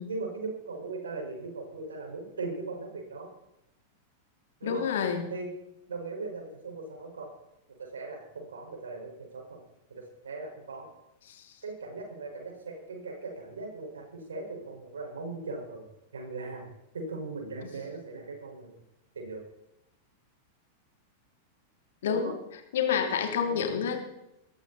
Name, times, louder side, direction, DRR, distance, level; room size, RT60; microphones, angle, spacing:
voice 1, 0.1-3.3 4.6-4.9 5.3-5.5 5.9-7.3 7.8-9.6 9.9-10.9 11.6-15.9 16.1-16.7 16.9-18.8 19.1-19.4 22.1-22.4 23.4-23.6, right 3 dB, 75° right, 2 dB, 5.2 m, -39 dB
voice 2, 4.6-5.2 11.3-11.5 22.0-22.3 22.7-24.0, left 7 dB, 65° left, 4 dB, 3.2 m, -28 dB
20.0 x 14.0 x 4.2 m, 0.87 s
figure-of-eight pair, 95°, 0 cm